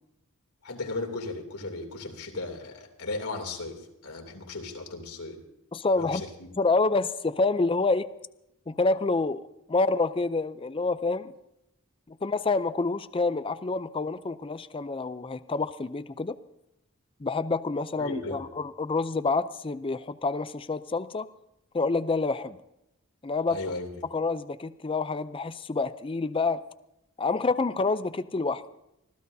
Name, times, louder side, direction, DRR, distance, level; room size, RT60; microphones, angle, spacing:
voice 1, 0.6-5.4 6.0-6.5 18.0-18.4 23.5-24.0, left 3 dB, 85° left, 2 dB, 2.9 m, -36 dB
voice 2, 5.7-6.2 6.6-8.1 8.7-9.4 9.7-11.3 12.1-16.4 17.2-21.3 21.7-22.6 23.2-23.6 24.1-26.6 27.2-28.6, left 3 dB, 25° left, 13 dB, 0.5 m, -27 dB
25.0 x 16.0 x 2.7 m, 0.86 s
head